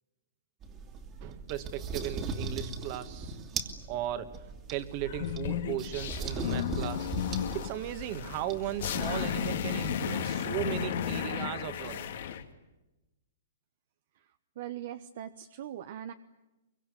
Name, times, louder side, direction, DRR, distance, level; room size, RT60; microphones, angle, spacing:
sound 1, 0.6-9.5, right 4 dB, 25° right, 2.5 m, -39 dB
voice 1, 1.2-3.4 3.9-7.1 7.5-12.1, right 12 dB, 40° right, 10 dB, 2.0 m, -37 dB
sound 2, 5.0-12.4, left 8 dB, 65° left, 2.3 m, -34 dB
voice 2, 14.6-16.1, right 11 dB, 60° right, 9 dB, 1.1 m, -40 dB
24.0 x 23.5 x 9.5 m, 1.0 s
hypercardioid pair, 140°, 0 cm